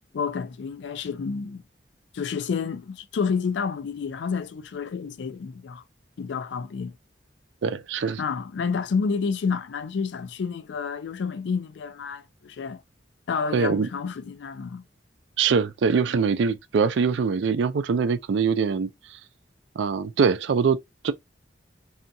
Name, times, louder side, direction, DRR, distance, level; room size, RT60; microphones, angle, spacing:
voice 1, 0.1-1.6 2.1-5.8 6.2-7.0 8.2-12.8 13.3-14.8, left 5 dB, 70° left, 0.4 m, -29 dB
voice 2, 7.6-8.2 13.5-13.9 15.4-18.9 19.8-21.1, right 5 dB, 75° right, 0.4 m, -23 dB
2.8 x 2.3 x 2.6 m
head